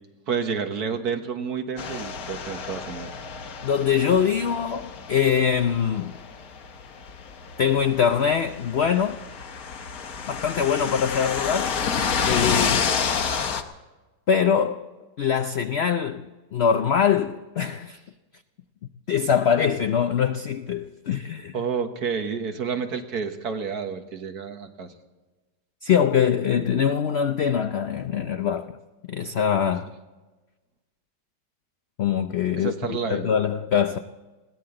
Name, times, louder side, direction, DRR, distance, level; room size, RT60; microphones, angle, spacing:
voice 1, 0.3-3.1 21.5-24.9 32.5-33.3, right 6 dB, 60° right, 1.8 m, -29 dB
sound 1, 1.8-13.6, left 6 dB, 60° left, 1.4 m, -29 dB
voice 2, 3.6-6.1 7.6-9.2 10.2-11.7 12.2-13.0 14.3-14.8 15.2-18.0 19.1-21.6 25.8-28.8 29.1-29.9 32.0-34.0, left 7 dB, 80° left, 0.5 m, -23 dB
21.0 x 16.5 x 3.8 m
omnidirectional pair, 1.9 m